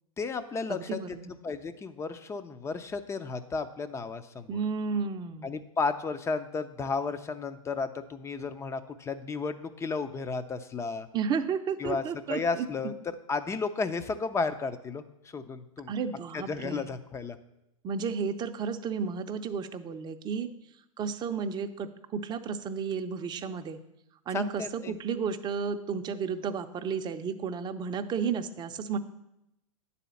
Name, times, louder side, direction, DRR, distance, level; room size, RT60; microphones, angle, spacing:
voice 1, 0.2-1.0 1.3-4.6 5.4-11.1 11.8-12.0 12.3-12.9 13.3-15.9 16.3-17.4 24.3-24.9, left 4 dB, 15° left, 11 dB, 0.6 m, -33 dB
voice 2, 0.7-1.3 4.5-5.5 11.1-12.7 15.9-16.9 17.8-20.5 21.0-23.8 24.3-29.0, right 6 dB, 25° right, 8 dB, 0.6 m, -32 dB
9.9 x 4.2 x 7.0 m, 0.86 s
hypercardioid pair, 105°, 18 cm